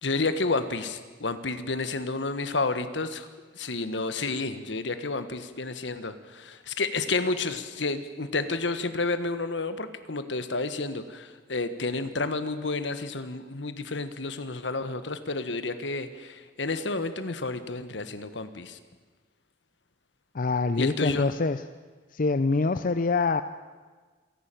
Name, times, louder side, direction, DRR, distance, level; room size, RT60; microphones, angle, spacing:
voice 1, 0.0-3.3 3.5-18.8 20.8-21.3, left 3 dB, 75° left, 11 dB, 1.5 m, -30 dB
voice 2, 20.3-21.6 22.1-23.4, left 3 dB, 50° left, 12 dB, 0.6 m, -25 dB
27.5 x 11.5 x 9.1 m, 1.4 s
head